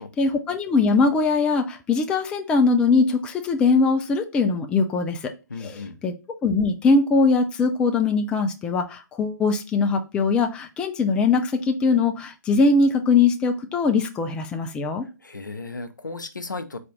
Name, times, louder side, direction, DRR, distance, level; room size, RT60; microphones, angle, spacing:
voice 1, 0.2-5.2 5.6-5.7 6.0-6.1 6.4-15.0, left 4 dB, 10° left, 5 dB, 0.3 m, -21 dB
voice 2, 5.5-6.0 15.2-16.8, left 3 dB, 80° left, 8 dB, 0.6 m, -35 dB
4.2 x 2.5 x 4.8 m, 0.30 s
figure-of-eight pair, 125°, 10 cm